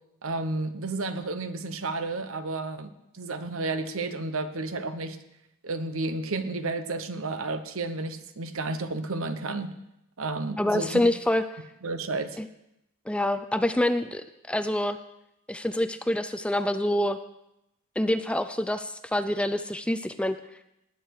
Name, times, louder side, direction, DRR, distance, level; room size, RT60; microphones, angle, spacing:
voice 1, 0.2-5.2 5.6-9.7 10.2-11.0 11.8-12.4, right 3 dB, 65° right, 10 dB, 1.0 m, -32 dB
voice 2, 10.6-11.4 12.4-12.5 13.1-15.0 15.5-17.2 18.0-20.4, left 1 dB, 5° left, 10 dB, 0.4 m, -26 dB
19.0 x 8.4 x 4.7 m, 0.86 s
head